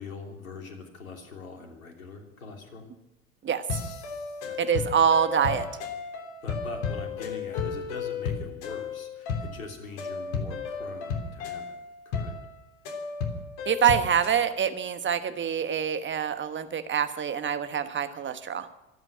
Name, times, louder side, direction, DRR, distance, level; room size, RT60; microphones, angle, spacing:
voice 1, 0.0-2.9 4.4-4.9 6.4-11.7 12.0-12.3, left 4 dB, 80° left, 4 dB, 3.0 m, -43 dB
sound 1, 3.7-14.4, left 5 dB, 60° left, 3.3 m, -34 dB
voice 2, 4.6-5.7 13.7-18.7, right 8 dB, 30° right, 10 dB, 1.2 m, -25 dB
25.0 x 8.9 x 6.2 m, 0.94 s
hypercardioid pair, 75°, 41 cm